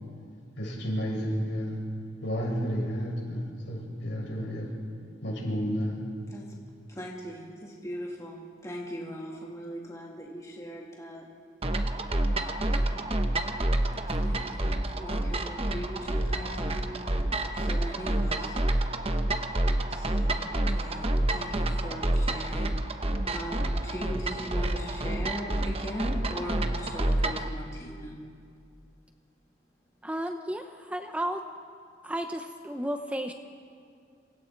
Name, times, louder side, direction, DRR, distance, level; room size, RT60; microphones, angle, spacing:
voice 1, 0.6-1.8 2.2-4.7 5.2-6.0, equal, 70° left, -2 dB, 7.1 m, -31 dB
voice 2, 6.9-11.3 12.6-12.9 14.2-17.0 17.5-18.6 19.9-23.0 23.3-28.2, equal, 15° left, -2 dB, 2.2 m, -40 dB
sound 1, 11.6-27.5, right 1 dB, 30° right, 1.1 m, -28 dB
voice 3, 30.0-31.4 32.0-33.3, right 1 dB, 5° right, 6 dB, 0.8 m, -33 dB
28.0 x 26.0 x 4.6 m, 2.2 s
head